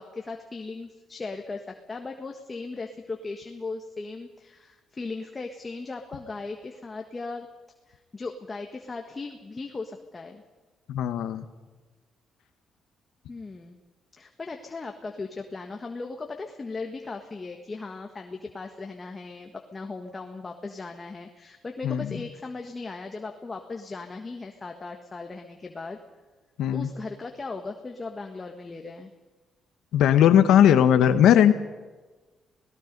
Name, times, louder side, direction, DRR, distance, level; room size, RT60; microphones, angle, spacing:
voice 1, 0.0-7.5 7.9-10.4 13.3-13.8 14.2-26.0 26.7-29.1, left 3 dB, 30° left, 4 dB, 1.5 m, -37 dB
voice 2, 10.9-11.4 21.8-22.2 26.6-26.9 29.9-31.6, left 10 dB, 80° left, 10 dB, 1.3 m, -19 dB
27.0 x 18.0 x 5.4 m, 1.3 s
cardioid pair, 90°, 0 cm